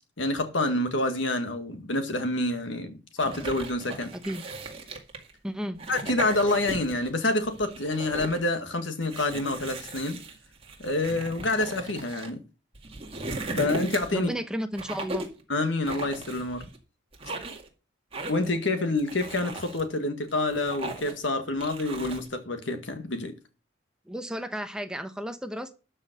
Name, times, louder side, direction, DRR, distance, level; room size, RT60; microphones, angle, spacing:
voice 1, 0.2-4.1 5.9-10.2 10.8-12.4 13.6-14.3 15.5-16.6 18.3-23.3, left 2 dB, 85° left, 1.9 m, -27 dB
sound 1, 3.2-5.3 5.7-7.1 7.4-8.4 9.0-12.3 12.7-14.3 14.7-15.4 15.8-16.8 17.1-17.7 18.1-18.6 19.0-19.8 20.3-21.2 21.6-22.3, right 2 dB, 30° right, 2.1 m, -37 dB
voice 2, 4.1-4.4 5.4-5.8 14.1-15.3 24.1-25.8, equal, 5° right, 0.9 m, -33 dB
12.5 x 5.6 x 6.8 m
head